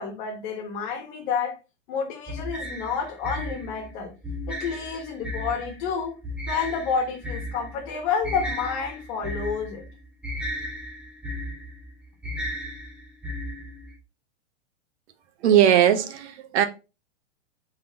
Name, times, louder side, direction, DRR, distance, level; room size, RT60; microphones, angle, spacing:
voice 1, 0.0-1.6 1.9-4.1 4.5-6.1 6.5-9.8, left 6 dB, 45° left, 1.3 m, -29 dB
sound 1, 2.3-14.0, equal, 5° right, 0.5 m, -35 dB
voice 2, 15.4-16.6, right 10 dB, 70° right, 0.8 m, -19 dB
3.8 x 3.6 x 2.8 m
hypercardioid pair, 145°, 35 cm